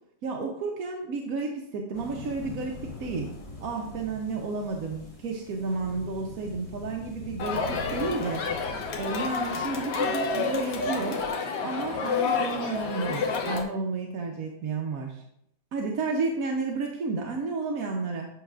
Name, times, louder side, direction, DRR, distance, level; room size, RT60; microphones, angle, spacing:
voice 1, 0.2-3.3 3.6-8.5 8.9-11.3 11.6-15.2 15.7-18.3, right 4 dB, 65° right, 0 dB, 1.2 m, -32 dB
sound 1, 1.9-10.1, left 3 dB, 25° left, 1.1 m, -43 dB
Crowd, 7.4-13.6, left 4 dB, 80° left, 1.6 m, -29 dB
9.1 x 6.4 x 2.4 m, 0.74 s
omnidirectional pair, 1.8 m